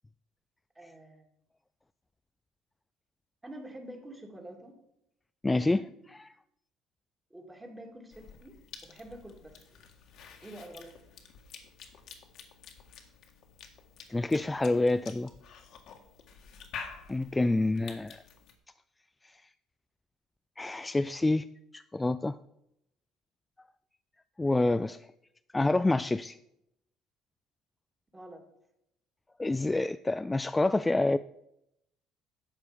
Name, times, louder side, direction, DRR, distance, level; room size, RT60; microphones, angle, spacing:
voice 1, 0.8-1.3 3.4-4.8 5.5-5.9 7.3-9.6 10.4-10.9 28.1-28.4, right 1 dB, 15° right, 2 dB, 2.2 m, -47 dB
voice 2, 5.4-5.8 14.1-15.3 17.1-18.2 19.2-19.4 20.6-21.5 21.7-22.4 24.4-25.1 25.5-26.4 29.4-31.2, left 2 dB, 15° left, 12 dB, 0.3 m, -27 dB
Cough / Chewing mastication, 8.1-18.5, left 6 dB, 60° left, 1.7 m, -49 dB
12.0 x 7.4 x 5.1 m, 0.79 s
cardioid pair, 110°, 0 cm